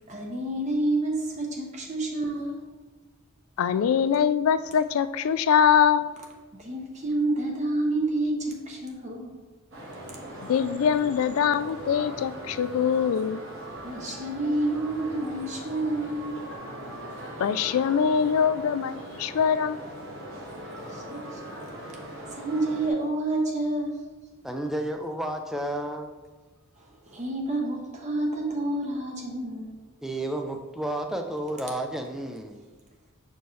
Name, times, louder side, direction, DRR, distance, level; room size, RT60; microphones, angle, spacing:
voice 1, 0.1-2.6 6.6-9.3 13.8-16.4 20.9-21.4 22.0-24.0 26.8-29.8, right 2 dB, 35° right, 0.7 m, -29 dB
voice 2, 3.6-6.1 10.4-13.4 17.4-20.0, left 7 dB, 80° left, 0.3 m, -23 dB
sound 1, 9.7-22.9, right 1 dB, 65° right, 1.6 m, -40 dB
voice 3, 24.4-26.1 30.0-32.6, right 1 dB, ahead, 0.4 m, -31 dB
6.7 x 4.4 x 3.1 m
head